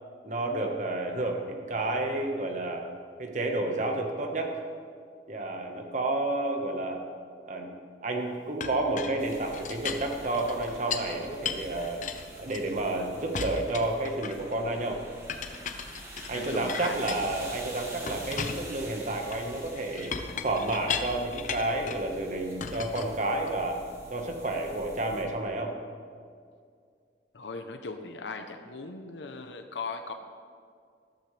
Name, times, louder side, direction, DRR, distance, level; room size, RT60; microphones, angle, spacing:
voice 1, 0.2-2.9 3.2-4.6 5.3-7.0 7.5-7.7 8.0-12.0 12.4-15.0 16.3-20.2 20.4-23.8 24.1-25.7, right 2 dB, 45° right, 3 dB, 1.4 m, -30 dB
Chink clink, 8.6-11.1 11.5-12.9 13.3-14.6 15.3-17.6 18.1-22.1 22.6-23.8, left 5 dB, 45° left, 0.7 m, -37 dB
sound 1, 9.2-25.2, right 1 dB, 15° right, 1.6 m, -47 dB
voice 2, 16.3-17.2 27.3-30.1, left 4 dB, 85° left, 6 dB, 0.8 m, -38 dB
13.0 x 13.0 x 3.3 m, 2.2 s
head